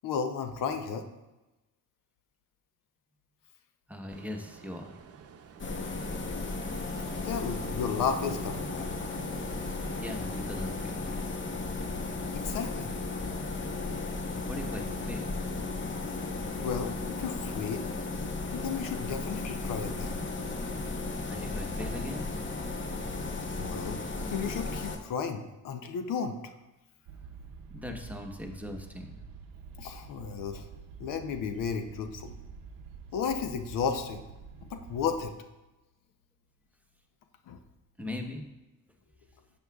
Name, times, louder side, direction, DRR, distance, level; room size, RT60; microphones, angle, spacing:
voice 1, 0.0-1.1 7.2-8.9 12.3-12.9 16.5-17.9 18.5-20.2 23.6-24.0 24.3-26.4 29.8-30.7 31.0-32.3 33.1-34.2 34.6-35.3 37.5-37.6, left 6 dB, 75° left, 6 dB, 0.8 m, -33 dB
voice 2, 3.9-4.9 9.9-11.4 14.4-15.3 21.3-22.3 27.7-29.2 38.0-38.5, left 1 dB, 5° right, 2 dB, 1.1 m, -40 dB
Ocean, 4.1-10.9, right 6 dB, 50° right, 0.7 m, -49 dB
sound 1, 5.6-25.0, left 3 dB, 35° left, 1.0 m, -35 dB
sound 2, 27.1-35.3, right 5 dB, 85° right, 0.7 m, -47 dB
11.0 x 7.1 x 2.4 m, 1.0 s
cardioid pair, 80°, 32 cm